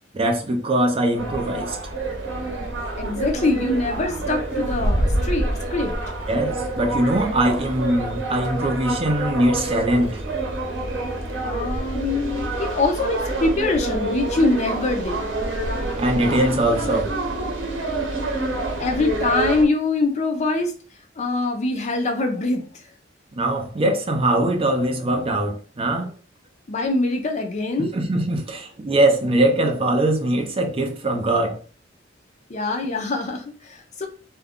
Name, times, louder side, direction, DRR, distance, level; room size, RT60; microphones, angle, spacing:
voice 1, 0.1-1.9 6.3-10.2 16.0-17.1 23.4-26.1 27.8-31.6, right 1 dB, 30° right, 0.5 m, -22 dB
sound 1, 1.2-19.7, right 2 dB, 85° right, 0.7 m, -27 dB
voice 2, 3.0-5.9 11.4-15.2 18.8-20.7 21.2-22.7 26.7-27.9 32.5-34.1, left 2 dB, 40° left, 0.5 m, -23 dB
2.4 x 2.1 x 3.5 m
head